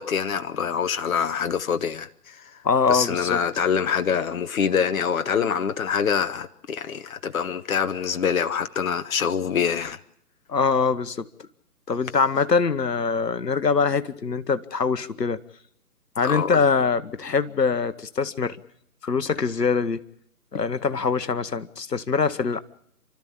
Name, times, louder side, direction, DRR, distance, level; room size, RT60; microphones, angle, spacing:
voice 1, 0.0-2.6 2.9-10.0 16.2-16.6, left 7 dB, 55° left, 1.1 m, -25 dB
voice 2, 2.6-3.4 10.5-11.3 11.9-15.4 16.2-18.6 19.1-20.0 20.5-22.6, left 5 dB, 80° left, 1.2 m, -23 dB
29.0 x 13.0 x 8.7 m
figure-of-eight pair, 140°, 48 cm